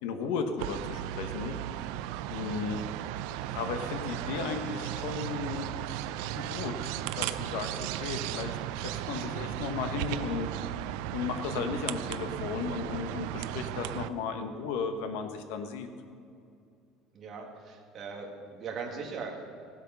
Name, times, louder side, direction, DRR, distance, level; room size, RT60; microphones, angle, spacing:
voice 1, 0.0-1.6 2.3-2.8 3.5-6.0 6.3-8.6 9.1-10.5 11.1-15.9, left 5 dB, 80° left, 7 dB, 1.3 m, -35 dB
sound 1, 0.6-14.1, right 13 dB, 70° right, 0.5 m, -35 dB
voice 2, 17.1-19.6, right 5 dB, 30° right, 0 dB, 1.9 m, -40 dB
16.5 x 8.2 x 5.7 m, 2.5 s
cardioid pair, 180°, 0 cm